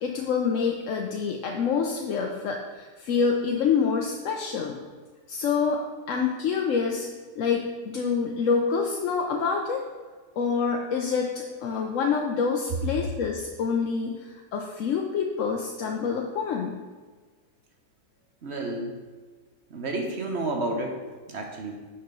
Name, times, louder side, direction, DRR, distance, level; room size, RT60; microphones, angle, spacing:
voice 1, 0.0-4.8 5.3-5.8 6.1-7.1 7.4-9.8 10.4-16.7, left 5 dB, 60° left, 1 dB, 1.0 m, -27 dB
voice 2, 18.4-19.0 19.7-21.0 21.3-21.8, right 2 dB, 50° right, 2 dB, 1.2 m, -30 dB
6.8 x 5.7 x 5.3 m, 1.4 s
omnidirectional pair, 1.7 m